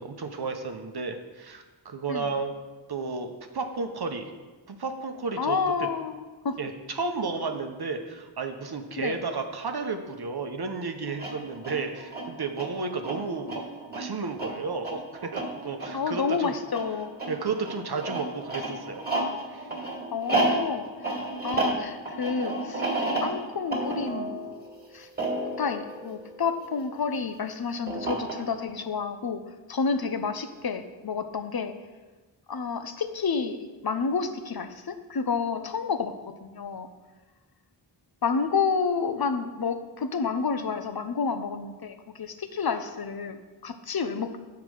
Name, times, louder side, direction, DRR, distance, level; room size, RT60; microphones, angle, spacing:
voice 1, 0.0-2.5 2.9-4.3 4.7-5.6 6.6-16.5 17.3-19.1 19.5-19.7, right 4 dB, 55° right, 5 dB, 0.8 m, -32 dB
voice 2, 5.4-6.6 9.0-9.2 15.9-17.1 20.1-21.2 21.4-22.8 23.2-24.4 24.9-25.1 25.6-29.4 29.7-31.7 32.5-33.6 33.8-36.9 38.2-44.4, left 5 dB, 50° left, 9 dB, 0.7 m, -29 dB
sound 1, 11.1-26.8 27.9-28.7, right 2 dB, 20° right, 2.0 m, -32 dB
7.1 x 4.7 x 6.3 m, 1.3 s
cardioid pair, 45°, 46 cm